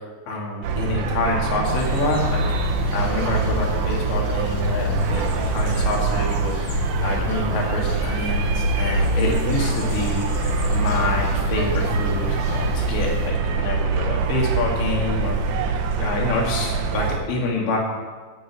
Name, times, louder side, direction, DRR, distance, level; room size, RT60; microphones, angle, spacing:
voice 1, 0.3-10.2 10.7-15.6 16.0-17.8, left 2 dB, 80° left, -1 dB, 4.7 m, -27 dB
sound 1, 0.6-17.2, right 5 dB, 80° right, 1.8 m, -24 dB
sound 2, 1.6-13.3, left 5 dB, 50° left, 1.4 m, -29 dB
10.0 x 9.4 x 8.3 m, 1.5 s
omnidirectional pair, 5.1 m